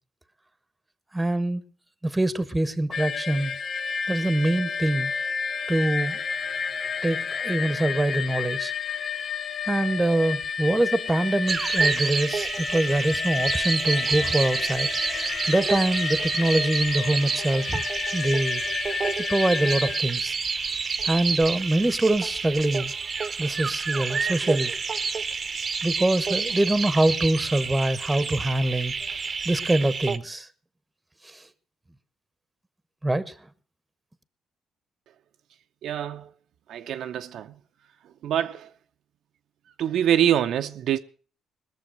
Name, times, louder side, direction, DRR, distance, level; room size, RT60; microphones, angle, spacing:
voice 1, 1.1-1.6 2.0-3.5 4.1-5.1 5.7-6.2 7.0-8.7 9.7-17.8 18.1-18.6 19.3-20.4 21.0-22.9 23.4-24.7 25.8-28.9 29.4-30.5 31.2-31.4 33.0-33.3, right 1 dB, 10° right, 1.1 m, -24 dB
sound 1, 2.9-20.0, left 6 dB, 50° left, 0.5 m, -31 dB
sound 2, 11.5-30.2, right 5 dB, 40° right, 0.8 m, -29 dB
voice 2, 35.8-36.3 36.7-37.5 38.2-38.7 39.8-41.0, right 10 dB, 75° right, 0.7 m, -25 dB
19.5 x 7.1 x 6.3 m
cardioid pair, 90°, 0 cm